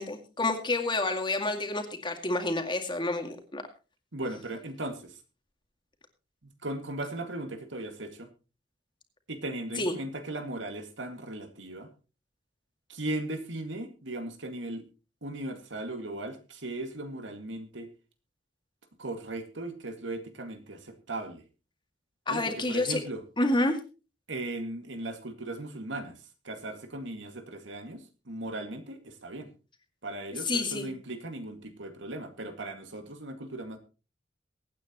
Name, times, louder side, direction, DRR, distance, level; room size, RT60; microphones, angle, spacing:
voice 1, 0.0-3.6 9.8-10.0 22.3-23.0 23.4-23.8 30.4-30.9, left 2 dB, 25° left, 5 dB, 2.2 m, -29 dB
voice 2, 4.1-5.2 6.6-8.3 9.3-11.9 12.9-14.8 15.2-17.9 19.0-21.4 22.3-23.2 24.3-26.2 26.4-29.5 30.0-33.8, right 2 dB, 80° right, 7 dB, 2.1 m, -37 dB
23.5 x 9.2 x 3.0 m, 0.32 s
head